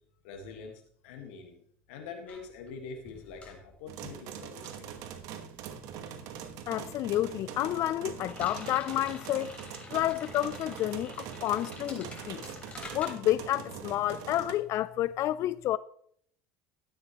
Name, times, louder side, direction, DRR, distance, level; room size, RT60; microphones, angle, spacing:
voice 1, 0.2-1.6 1.9-4.9, left 5 dB, 80° left, 1.6 m, -45 dB
sound 1, 2.3-6.1 6.3-13.1, left 2 dB, 20° left, 3.6 m, -49 dB
sound 2, 3.9-14.5, right 8 dB, 65° right, 1.2 m, -43 dB
voice 2, 6.7-9.5 9.9-12.5 12.9-15.8, left 13 dB, 50° left, 0.3 m, -30 dB
12.5 x 9.6 x 3.0 m
hypercardioid pair, 85°, 6 cm